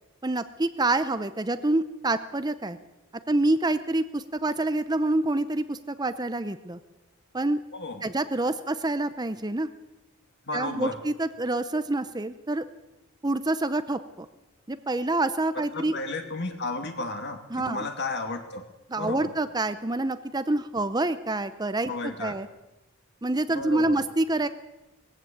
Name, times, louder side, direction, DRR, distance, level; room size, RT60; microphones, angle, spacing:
voice 1, 0.2-2.8 3.3-6.8 7.3-7.6 8.0-9.7 10.5-12.6 13.2-14.3 14.7-16.0 17.5-17.9 18.9-21.9 22.2-22.5 23.2-24.5, right 2 dB, 20° right, 11 dB, 0.7 m, -27 dB
voice 2, 7.7-8.0 10.4-11.0 15.7-18.6 19.0-19.3 21.9-22.3 23.5-24.0, left 2 dB, 50° left, 5 dB, 2.5 m, -33 dB
20.5 x 15.5 x 8.5 m, 0.99 s
head